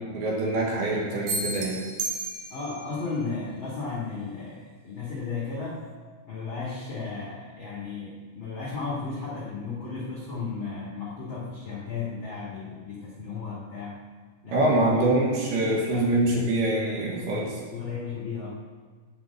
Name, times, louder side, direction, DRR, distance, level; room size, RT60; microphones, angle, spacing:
voice 1, 0.0-1.8 14.5-17.6, right 1 dB, 70° right, -2 dB, 3.2 m, -25 dB
sound 1, 1.3-2.9, right 3 dB, 85° right, 2.0 m, -32 dB
voice 2, 2.5-5.8 6.3-14.0 14.4-16.5 17.7-18.5, left 4 dB, 60° left, -6 dB, 1.2 m, -35 dB
10.5 x 5.2 x 8.2 m, 1.5 s
omnidirectional pair, 5.2 m